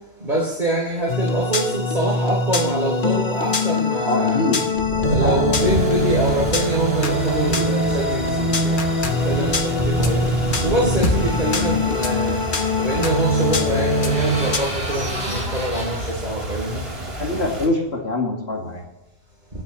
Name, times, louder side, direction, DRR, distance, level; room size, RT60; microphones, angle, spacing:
voice 1, 0.2-4.5 5.0-12.4 12.8-16.8, right 1 dB, 45° right, -4 dB, 3.2 m, -24 dB
sound 1, 1.1-14.6, left 2 dB, 50° left, 1.4 m, -22 dB
voice 2, 4.1-4.6 5.2-5.5 17.0-18.8, left 1 dB, 80° left, 0 dB, 2.4 m, -24 dB
sound 2, 5.6-17.7, right 1 dB, 70° right, 3.6 m, -31 dB
sound 3, 12.4-17.4, equal, 25° right, 5.1 m, -33 dB
23.5 x 8.9 x 3.1 m, 1.1 s
omnidirectional pair, 1.1 m